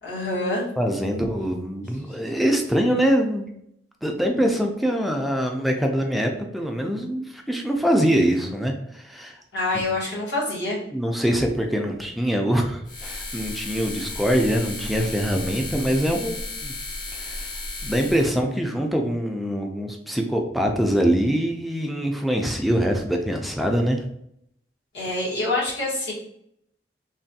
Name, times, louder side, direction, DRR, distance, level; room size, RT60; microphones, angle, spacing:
voice 1, 0.0-0.7 9.5-10.8 24.9-26.1, left 2 dB, 75° left, -5 dB, 1.4 m, -26 dB
voice 2, 0.8-3.4 4.0-9.4 9.7-9.8 10.9-16.7 17.1-17.5 17.8-24.0, equal, ahead, 2 dB, 0.3 m, -24 dB
sound 1, 12.8-18.4, left 2 dB, 50° left, 0.7 m, -34 dB
3.3 x 2.2 x 2.7 m, 0.71 s
head